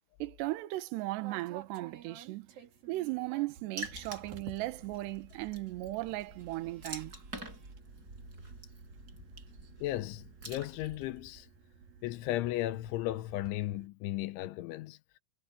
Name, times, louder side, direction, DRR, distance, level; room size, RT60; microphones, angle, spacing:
voice 1, 0.2-2.5 2.9-7.1, right 19 dB, 75° right, 3.1 m, -36 dB
sound 1, 1.2-13.9, right 7 dB, 55° right, 4.1 m, -55 dB
Water / Splash splatter, 3.8-11.2, right 2 dB, 20° right, 6.7 m, -47 dB
voice 2, 9.8-11.5 12.0-15.2, left 15 dB, 85° left, 3.4 m, -35 dB
omnidirectional pair, 5.4 m